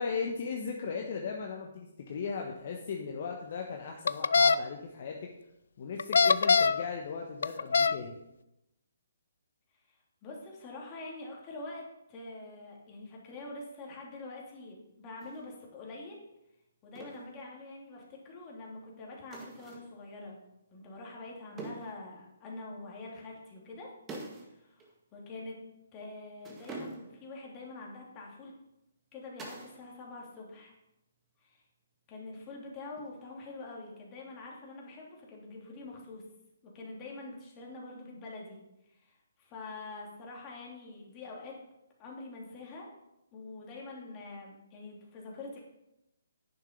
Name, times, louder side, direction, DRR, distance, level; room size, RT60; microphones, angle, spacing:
voice 1, 0.0-5.3 5.8-8.1, left 5 dB, 50° left, 1 dB, 1.3 m, -37 dB
sound 1, 4.1-4.6 6.0-6.8 7.4-8.0, left 5 dB, 65° left, 0.4 m, -22 dB
voice 2, 9.9-16.2 16.8-20.4 20.7-23.9 24.4-25.6 25.9-28.5 29.1-30.7 31.4-31.6 32.1-36.2 36.6-38.6 38.9-41.6 42.0-42.9 43.3-45.6, left 2 dB, 25° left, -2 dB, 3.0 m, -45 dB
Milk jug pick up put down screw cap unscrew cap, 15.2-15.4 16.9-17.3 19.3-19.9 21.6-22.0 24.1-24.5 24.8-24.9 26.4-27.2 29.4-29.8 30.1-30.6 33.0-33.4, right 3 dB, 15° right, 1.9 m, -45 dB
10.0 x 6.8 x 5.2 m, 0.89 s
figure-of-eight pair, 140°, 0 cm